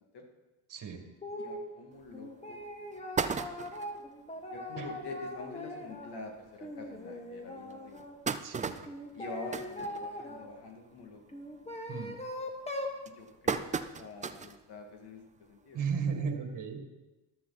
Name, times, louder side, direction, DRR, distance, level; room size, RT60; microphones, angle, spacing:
voice 1, 0.7-1.0 4.8-4.9 8.4-8.8 11.9-12.1 15.7-16.9, right 6 dB, 45° right, 6 dB, 2.0 m, -35 dB
sound 1, 1.2-1.6 2.1-6.2 6.6-8.1 8.8-10.5 11.3-13.0, left 1 dB, 15° left, 1.5 m, -41 dB
voice 2, 1.4-2.6 3.2-3.4 3.7-4.0 4.5-8.0 9.1-11.2 13.0-13.7 14.0-16.3, left 3 dB, 60° left, 3 dB, 2.4 m, -46 dB
sound 2, 2.0-2.1 2.6-2.7 2.9-4.0 4.5-4.6 4.9-5.0 5.3-5.5 6.2-6.3 6.9-7.0 7.7-10.5 10.9-11.2 11.6-12.0 12.6-14.6 15.1-15.2 16.3-16.4, right 5 dB, 15° right, 0.4 m, -35 dB
13.5 x 12.5 x 4.2 m, 1.1 s
cardioid pair, 120°, 45 cm